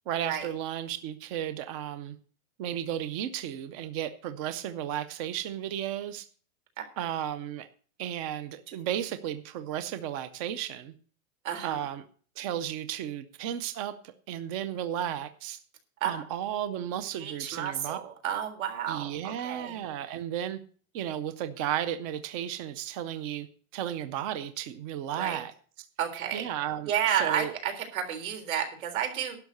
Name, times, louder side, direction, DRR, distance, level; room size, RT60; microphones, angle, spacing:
voice 1, 0.1-2.2 2.6-6.3 7.0-7.7 8.0-10.9 11.6-12.0 12.4-15.6 16.0-18.0 18.9-20.6 20.9-23.5 23.7-25.5 26.3-27.5, right 10 dB, 25° right, 11 dB, 0.4 m, -34 dB
voice 2, 11.4-11.8 16.0-16.2 17.2-19.8 25.2-25.4 26.0-26.5 26.9-29.4, right 9 dB, 75° right, 5 dB, 3.8 m, -31 dB
11.5 x 6.3 x 8.1 m, 0.42 s
supercardioid pair, 165°, 41 cm